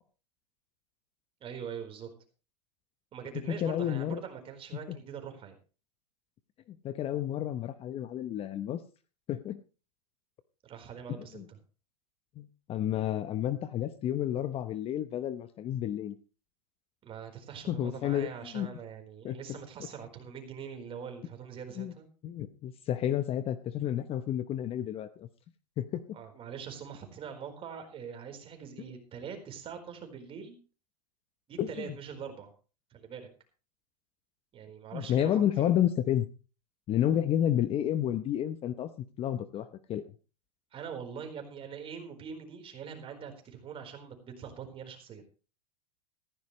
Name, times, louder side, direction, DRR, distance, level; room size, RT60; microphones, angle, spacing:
voice 1, 1.4-2.1 3.1-5.5 10.6-11.4 17.0-22.1 26.1-30.6 31.5-32.5 32.9-33.3 34.5-35.3 35.6-35.7 40.7-45.2, right 7 dB, 25° right, 5 dB, 4.2 m, -43 dB
voice 2, 3.5-4.2 4.9-5.0 6.7-8.8 9.3-9.6 11.2-11.4 12.4-16.1 17.7-18.7 19.2-19.6 21.8-21.9 22.2-25.3 25.8-26.2 31.6-32.0 34.9-36.3 36.9-38.9 39.2-40.0, left 11 dB, 30° left, 12 dB, 0.8 m, -31 dB
15.0 x 15.0 x 3.2 m, 0.35 s
hypercardioid pair, 125°, 21 cm